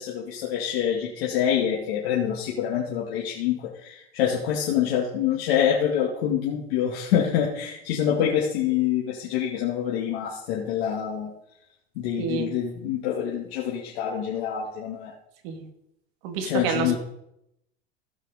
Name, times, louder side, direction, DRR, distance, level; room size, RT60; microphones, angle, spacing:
voice 1, 0.0-11.3 12.0-15.1 16.4-17.0, left 9 dB, 65° left, -4 dB, 2.6 m, -26 dB
voice 2, 12.2-12.5 15.4-15.6 16.2-17.0, right 6 dB, 65° right, 5 dB, 2.5 m, -28 dB
16.5 x 6.2 x 5.2 m, 0.81 s
hypercardioid pair, 100°, 31 cm